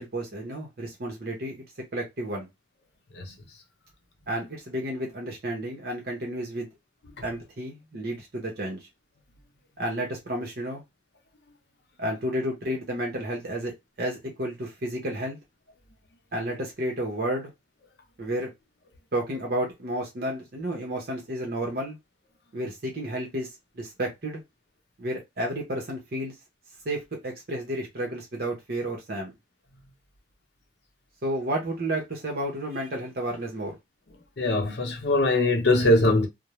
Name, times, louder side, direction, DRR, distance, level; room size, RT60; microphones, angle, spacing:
voice 1, 0.0-1.5 1.9-2.5 4.3-6.7 7.2-8.8 9.8-10.8 12.0-13.7 14.0-15.4 16.3-17.5 18.2-18.5 19.1-22.0 22.5-24.4 25.0-26.3 26.8-29.3 31.2-33.8, right 1 dB, 55° right, 0.8 m, -31 dB
voice 2, 34.4-36.3, left 1 dB, 70° left, 0.7 m, -22 dB
2.4 x 2.0 x 3.0 m
head